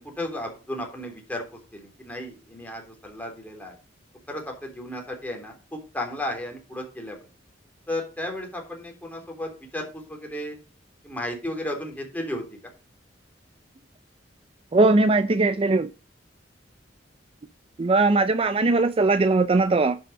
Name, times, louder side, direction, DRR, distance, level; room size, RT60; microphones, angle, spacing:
voice 1, 0.0-1.4 1.7-3.7 4.3-7.2 7.9-10.6 11.0-12.6, left 1 dB, 10° left, 3.5 m, -34 dB
voice 2, 14.7-15.9 17.8-20.0, right 3 dB, 30° right, 0.5 m, -20 dB
10.5 x 5.7 x 5.2 m
head